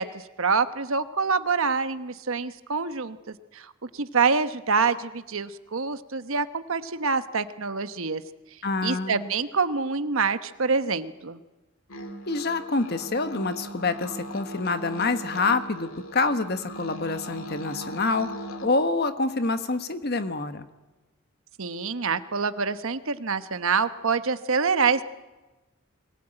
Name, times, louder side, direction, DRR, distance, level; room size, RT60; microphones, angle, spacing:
voice 1, 0.0-8.2 8.8-11.4 21.6-25.0, right 5 dB, 70° right, 11 dB, 1.1 m, -26 dB
voice 2, 8.6-9.3 12.3-18.3 18.6-20.7, left 3 dB, 50° left, 9 dB, 1.3 m, -27 dB
sound 1, 11.9-18.7, equal, 70° left, 2.5 m, -39 dB
23.0 x 19.0 x 9.0 m, 1.1 s
head